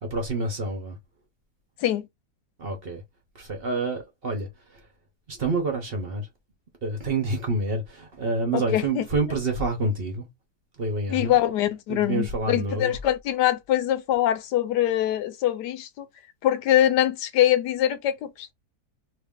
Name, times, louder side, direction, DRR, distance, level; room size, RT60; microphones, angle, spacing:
voice 1, 0.0-1.0 2.6-3.0 3.3-4.8 5.3-6.3 6.8-10.3 10.8-11.4 11.9-13.0, right 2 dB, 40° right, 1.0 m, -28 dB
voice 2, 8.5-9.1 11.1-16.1 16.4-18.5, left 12 dB, 85° left, 1.2 m, -23 dB
3.0 x 2.7 x 3.5 m
omnidirectional pair, 1.7 m